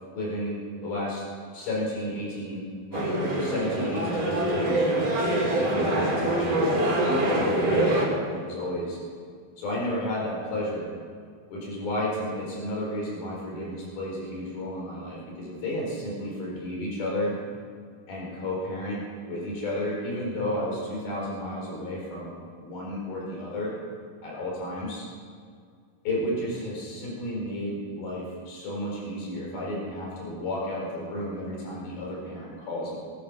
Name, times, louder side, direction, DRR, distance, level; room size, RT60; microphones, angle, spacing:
voice 1, 0.1-1.2 1.5-4.9 5.6-6.8 7.1-9.0 9.6-10.9 11.5-17.4 18.1-23.7 24.2-25.0 26.0-33.0, left 1 dB, 80° left, -3 dB, 6.1 m, -32 dB
sound 1, 2.9-8.1, right 1 dB, 40° right, 4.3 m, -24 dB
21.5 x 10.5 x 6.3 m, 2.1 s
omnidirectional pair, 4.2 m